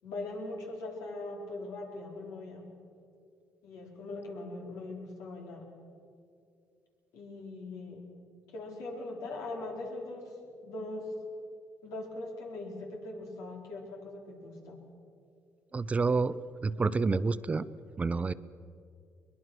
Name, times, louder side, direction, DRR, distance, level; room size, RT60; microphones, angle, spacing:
voice 1, 0.0-2.7 3.6-5.7 7.1-8.1 8.5-11.1 11.8-14.8, left 2 dB, 85° left, -1 dB, 4.5 m, -41 dB
voice 2, 15.7-17.6 18.0-18.3, right 4 dB, 25° right, 15 dB, 0.6 m, -28 dB
22.5 x 21.0 x 6.3 m, 2.4 s
cardioid pair, 100°, 5 cm